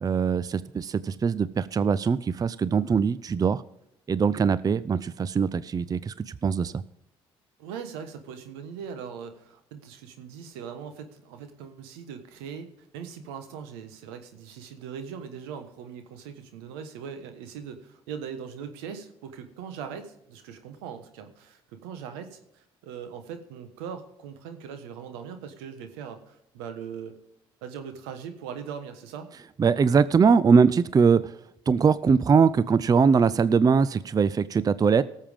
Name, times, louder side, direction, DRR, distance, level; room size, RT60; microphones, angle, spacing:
voice 1, 0.0-3.6 4.1-6.8 29.6-31.3 31.7-35.0, right 5 dB, 30° right, 17 dB, 0.5 m, -22 dB
voice 2, 7.6-27.2 27.6-29.3, right 7 dB, 80° right, 8 dB, 1.3 m, -40 dB
18.5 x 7.4 x 3.6 m, 0.79 s
hypercardioid pair, 55°, 12 cm